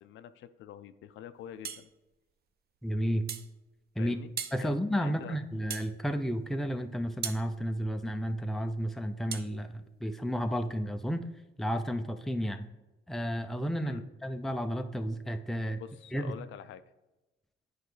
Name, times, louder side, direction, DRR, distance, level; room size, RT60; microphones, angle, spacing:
voice 1, 0.0-1.9 4.0-4.3 4.6-5.4 13.8-14.0 15.8-16.8, left 9 dB, 75° left, 12 dB, 0.5 m, -46 dB
sound 1, 1.6-1.9 3.3-3.5 4.4-4.6 5.7-5.9 7.2-7.4 9.3-9.5, right 8 dB, 50° right, 0.6 m, -37 dB
voice 2, 2.8-3.3 4.0-4.2 4.5-11.2 11.6-12.7 13.1-15.8 16.1-16.3, equal, ahead, 6 dB, 0.5 m, -32 dB
8.8 x 4.6 x 3.3 m, 1.0 s
cardioid pair, 90°, 20 cm